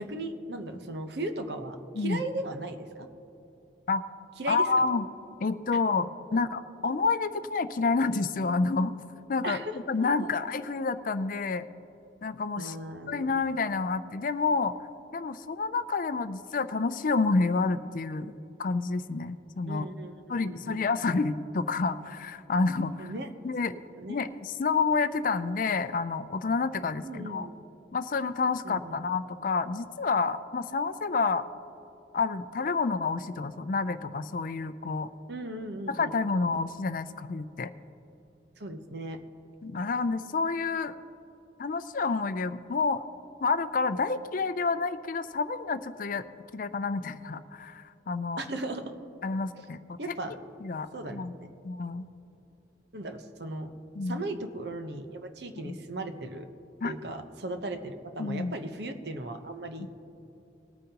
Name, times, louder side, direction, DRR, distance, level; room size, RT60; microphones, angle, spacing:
voice 1, 0.0-3.1 4.4-4.7 6.3-6.4 9.4-10.3 12.6-13.3 19.7-20.8 23.0-23.3 23.7-24.2 27.0-27.5 28.6-29.0 35.3-36.1 36.5-36.6 38.6-39.2 48.4-48.9 50.0-50.4 50.9-51.5 52.9-53.7 54.0-56.5 56.8-59.9, right 2 dB, 65° right, 7 dB, 0.9 m, -37 dB
voice 2, 4.5-5.1 5.4-8.9 9.3-9.6 9.9-11.7 12.2-12.8 13.1-14.7 15.1-18.3 18.6-19.9 20.3-23.1 23.4-23.7 24.1-27.5 27.9-31.4 32.1-35.1 35.9-37.7 39.6-40.9 41.6-43.0 43.4-46.2 46.5-48.5 49.2-50.0 50.6-51.3 51.6-52.1 54.0-54.2 55.6-55.7 56.8-56.9 58.2-58.6, left 4 dB, 50° left, 12 dB, 0.4 m, -29 dB
20.5 x 9.0 x 2.9 m, 2.9 s
head